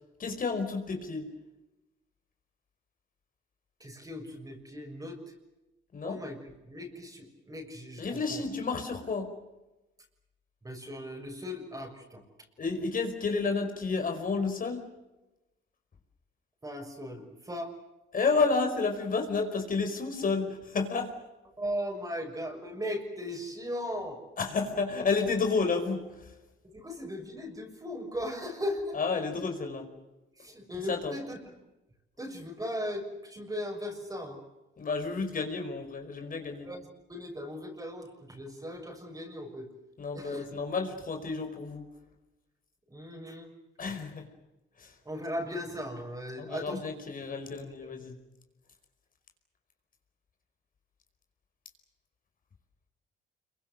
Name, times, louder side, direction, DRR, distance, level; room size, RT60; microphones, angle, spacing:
voice 1, 0.2-1.3 5.9-6.2 8.0-9.3 12.6-14.8 18.1-21.1 24.4-26.0 28.9-29.9 30.9-31.1 34.8-36.7 40.0-41.9 43.8-44.2 44.8-44.9 46.4-48.1, left 4 dB, 45° left, 4 dB, 5.1 m, -30 dB
voice 2, 3.8-5.2 6.0-6.4 6.6-8.4 10.6-12.2 16.6-17.7 21.6-24.2 26.6-29.0 30.4-31.4 32.2-34.4 36.6-39.7 40.1-40.5 42.9-43.5 45.0-46.8 47.6-47.7, equal, 20° right, 2 dB, 6.6 m, -38 dB
26.5 x 23.5 x 7.8 m, 1.0 s
cardioid pair, 90°, 20 cm